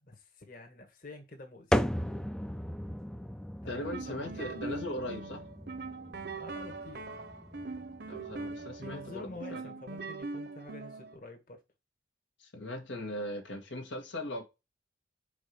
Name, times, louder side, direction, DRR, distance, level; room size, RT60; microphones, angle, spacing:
voice 1, 0.0-1.7 3.6-4.5 6.4-7.2 8.8-11.6, left 2 dB, 50° left, 1.6 m, -48 dB
sound 1, 1.7-9.4, equal, 5° left, 0.3 m, -37 dB
voice 2, 3.7-5.5 8.1-9.8 12.4-14.4, left 1 dB, 90° left, 1.8 m, -39 dB
sound 2, 3.7-11.2, right 3 dB, 60° right, 0.9 m, -41 dB
5.2 x 4.6 x 5.2 m
head